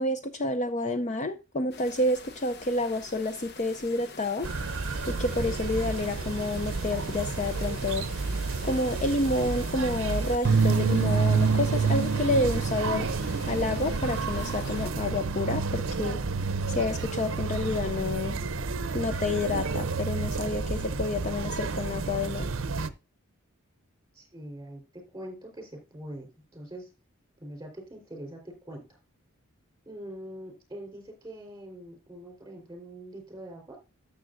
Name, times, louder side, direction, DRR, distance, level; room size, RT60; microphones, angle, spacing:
voice 1, 0.0-4.5 5.1-8.0 8.6-13.1 13.5-16.2 16.7-18.4 18.9-22.5, left 2 dB, 35° left, 9 dB, 0.5 m, -29 dB
sound 1, 1.7-14.9, left 4 dB, 50° left, 0.9 m, -46 dB
sound 2, 4.4-22.9, right 4 dB, 60° right, 0.6 m, -29 dB
voice 2, 24.1-26.9 27.4-28.4 28.7-29.0 29.9-33.8, right 1 dB, 15° right, 2 dB, 4.2 m, -43 dB
12.5 x 6.9 x 2.6 m, 0.28 s
head